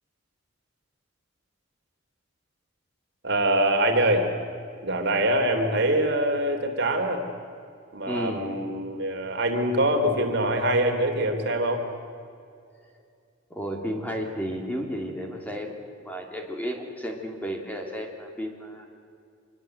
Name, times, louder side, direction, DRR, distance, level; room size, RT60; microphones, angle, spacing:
voice 1, 3.2-4.3 4.8-7.2 7.9-11.9, right 1 dB, 60° right, 4 dB, 3.1 m, -24 dB
voice 2, 8.1-8.6 13.5-15.8 16.0-18.9, equal, 10° left, 2 dB, 2.8 m, -33 dB
25.5 x 22.5 x 7.9 m, 2.4 s
head